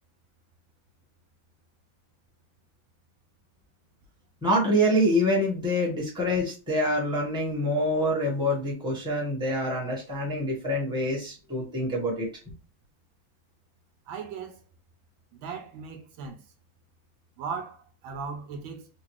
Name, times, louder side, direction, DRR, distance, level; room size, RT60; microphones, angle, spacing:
voice 1, 4.4-12.3, equal, 5° right, 1.0 m, -26 dB
voice 2, 14.1-14.6 15.3-16.4 17.4-18.9, right 5 dB, 80° right, 1.4 m, -37 dB
3.7 x 2.5 x 3.1 m
omnidirectional pair, 2.2 m